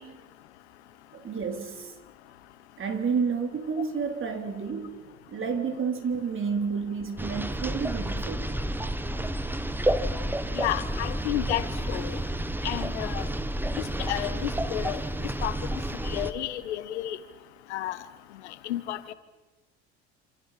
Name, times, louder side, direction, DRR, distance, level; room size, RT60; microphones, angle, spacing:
voice 1, 1.1-2.0 2.8-5.0 5.3-8.6, right 5 dB, 40° right, 5 dB, 3.9 m, -30 dB
sound 1, 7.2-16.3, right 1 dB, 5° right, 1.6 m, -30 dB
voice 2, 10.5-12.2 12.6-13.3 13.8-15.0 15.4-15.6 16.0-17.2 17.7-18.1 18.4-19.1, left 13 dB, 85° left, 13 dB, 1.6 m, -31 dB
28.0 x 27.5 x 5.8 m, 1.2 s
hypercardioid pair, 75°, 33 cm